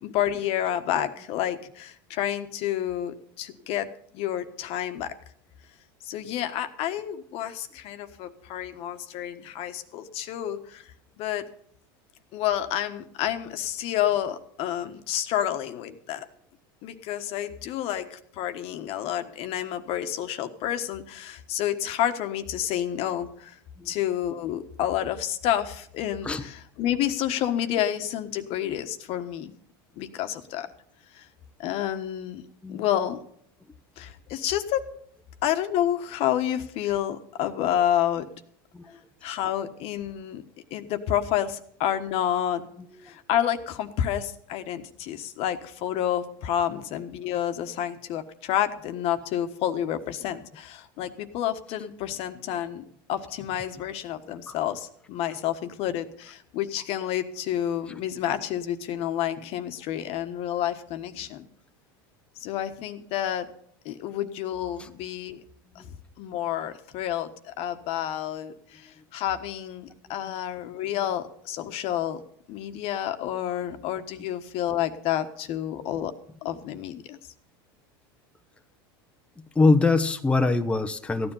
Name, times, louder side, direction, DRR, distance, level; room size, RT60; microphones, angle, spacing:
voice 1, 0.0-3.9 4.1-5.1 6.0-10.8 11.2-11.5 12.3-16.2 16.8-23.6 23.8-29.5 30.0-30.7 31.1-31.3 31.6-32.4 32.7-33.2 34.0-34.8 35.4-38.3 39.2-40.4 40.7-42.6 43.0-61.5 62.4-63.5 63.8-65.4 65.7-72.2 72.5-76.1 76.4-77.2, left 11 dB, 55° left, 9 dB, 1.3 m, -29 dB
voice 2, 79.4-81.3, left 3 dB, 10° left, 7 dB, 0.9 m, -24 dB
15.5 x 10.0 x 5.5 m, 0.65 s
supercardioid pair, 110°, 12 cm